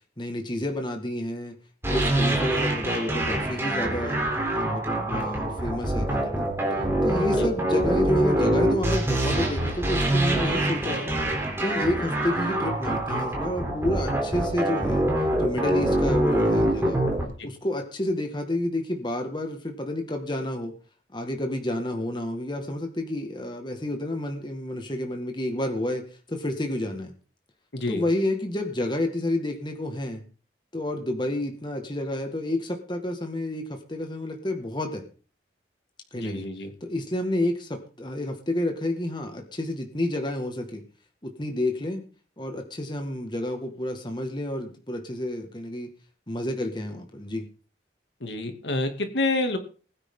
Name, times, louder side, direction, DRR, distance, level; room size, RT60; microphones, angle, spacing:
voice 1, 0.2-1.6 1.9-4.2 4.5-6.5 7.0-11.1 11.6-15.0 15.4-17.1 17.4-20.7 21.1-27.1 27.9-30.2 30.7-35.0 36.1-36.5 36.8-40.8 41.2-42.0 42.4-45.9 46.3-47.5, left 1 dB, 25° left, 4 dB, 1.9 m, -30 dB
sound 1, 1.8-17.2, right 1 dB, 15° right, 3.6 m, -25 dB
voice 2, 27.7-28.0 36.1-36.7 48.2-49.6, left 2 dB, 75° left, 5 dB, 2.6 m, -28 dB
21.0 x 9.4 x 3.8 m, 0.39 s
head